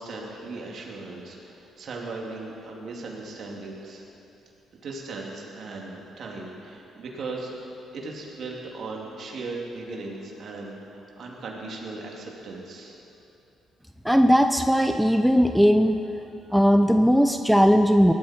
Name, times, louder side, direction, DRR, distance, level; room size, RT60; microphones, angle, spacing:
voice 1, 0.0-4.0 4.8-7.5 7.9-12.9 16.5-16.6, right 3 dB, 60° right, -2 dB, 2.8 m, -37 dB
voice 2, 14.0-16.0 16.5-18.1, equal, ahead, 6 dB, 0.6 m, -18 dB
18.5 x 12.5 x 4.5 m, 2.8 s
cardioid pair, 90°, 0 cm